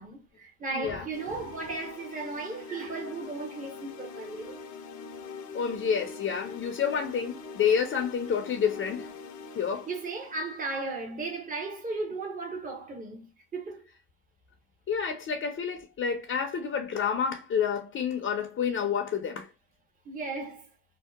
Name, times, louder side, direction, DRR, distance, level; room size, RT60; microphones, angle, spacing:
voice 1, 0.0-4.6 9.9-13.8 20.1-20.6, right 3 dB, 25° right, 0.8 m, -36 dB
voice 2, 0.7-1.1 5.5-9.1 9.5-9.9 14.9-19.5, left 7 dB, 45° left, 0.5 m, -29 dB
sound 1, 1.1-11.2, left 5 dB, 85° left, 0.7 m, -44 dB
2.7 x 2.1 x 2.3 m
cardioid pair, 90°, 30 cm